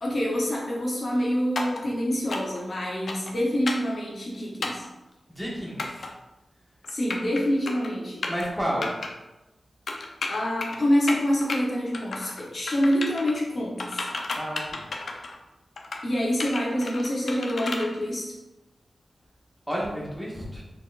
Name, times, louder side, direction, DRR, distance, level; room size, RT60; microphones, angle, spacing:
voice 1, 0.0-4.8 6.9-8.3 10.3-14.1 16.0-18.4, equal, 55° left, -3 dB, 0.9 m, -26 dB
sound 1, 1.6-1.8 2.3-2.6 3.1-3.3 3.7-3.9 4.6-4.9 5.8-6.1 6.8-7.4 7.7-7.9 8.2-8.5 8.8-9.1 9.9-10.8 11.1-11.6 11.9-12.4 12.7-13.3 13.8-15.4 15.8-16.0 16.4-17.9, left 3 dB, 75° left, 0.5 m, -32 dB
voice 2, 5.4-6.1 8.3-8.9 14.4-14.8 19.7-20.6, equal, 5° right, -5 dB, 1.3 m, -31 dB
4.4 x 4.0 x 2.5 m, 1.0 s
wide cardioid pair, 90°, 0 cm